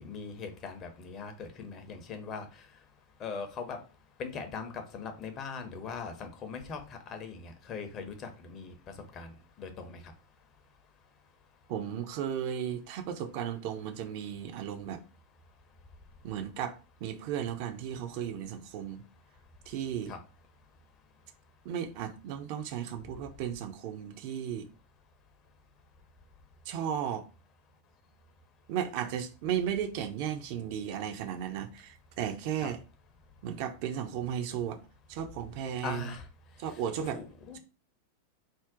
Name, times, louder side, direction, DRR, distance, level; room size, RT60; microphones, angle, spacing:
voice 1, 0.0-2.5 3.2-3.8 4.2-8.7 9.1-9.3 9.6-10.0 20.1-20.2 32.6-32.7 35.8-36.2 36.7-37.6, left 5 dB, 30° left, 0.6 m, -40 dB
voice 2, 11.7-15.0 16.2-19.0 19.7-20.1 21.6-24.7 26.7-27.3 28.7-32.8 33.4-34.8 35.1-36.1 36.6-37.2, right 9 dB, 45° right, 0.4 m, -35 dB
2.5 x 2.0 x 3.6 m
figure-of-eight pair, 90°, 0 cm